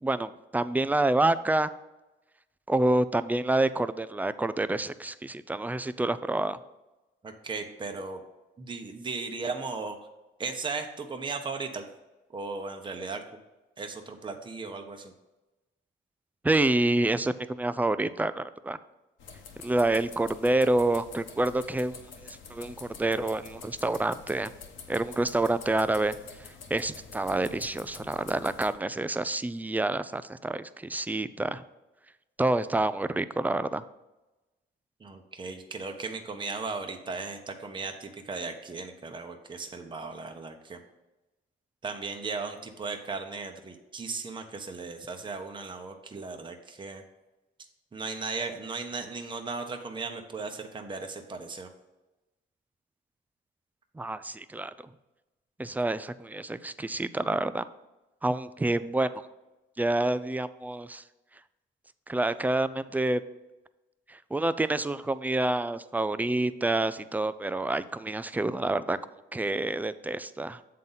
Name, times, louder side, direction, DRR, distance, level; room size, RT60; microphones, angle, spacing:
voice 1, 0.0-1.7 2.7-6.6 16.4-18.8 19.6-22.0 22.5-24.5 24.9-26.2 26.7-31.6 32.4-33.8 54.0-54.7 55.6-57.6 58.2-59.1 59.8-61.0 62.1-63.2 64.1-69.0 69.3-70.6, right 2 dB, 10° right, 14 dB, 0.3 m, -28 dB
voice 2, 7.2-8.2 8.6-10.1 10.4-11.8 12.3-13.2 13.8-15.1 35.0-40.8 41.8-47.0 47.9-51.7, right 4 dB, 25° right, 4 dB, 0.8 m, -36 dB
sound 1, 19.2-28.7, left 5 dB, 75° left, 1.2 m, -47 dB
7.5 x 3.9 x 5.6 m, 1.0 s
cardioid pair, 90°, 20 cm